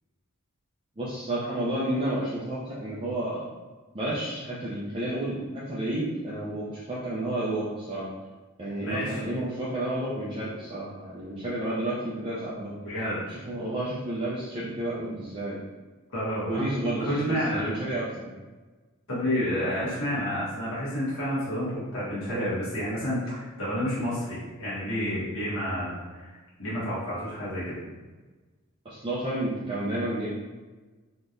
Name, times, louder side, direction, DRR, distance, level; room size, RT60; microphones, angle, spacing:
voice 1, 1.0-3.4 3.9-8.1 8.6-12.7 13.3-15.6 16.5-18.3 28.8-30.3, right 1 dB, 25° right, -8 dB, 0.5 m, -31 dB
voice 2, 8.8-9.2 12.8-13.3 16.1-16.6 17.0-17.7 19.1-27.7, equal, 70° left, -9 dB, 1.3 m, -30 dB
3.8 x 3.0 x 2.5 m, 1.3 s
head